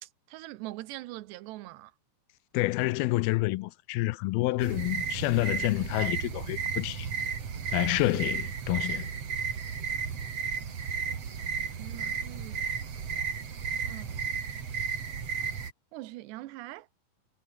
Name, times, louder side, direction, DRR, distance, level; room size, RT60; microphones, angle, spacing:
voice 1, 0.0-1.9 11.8-12.7 13.9-14.2 15.9-16.9, right 17 dB, 80° right, 3.0 m, -42 dB
voice 2, 2.5-7.1 7.7-9.1, left 20 dB, 85° left, 2.1 m, -28 dB
sound 1, 4.6-15.7, right 6 dB, 40° right, 3.2 m, -33 dB
omnidirectional pair, 5.1 m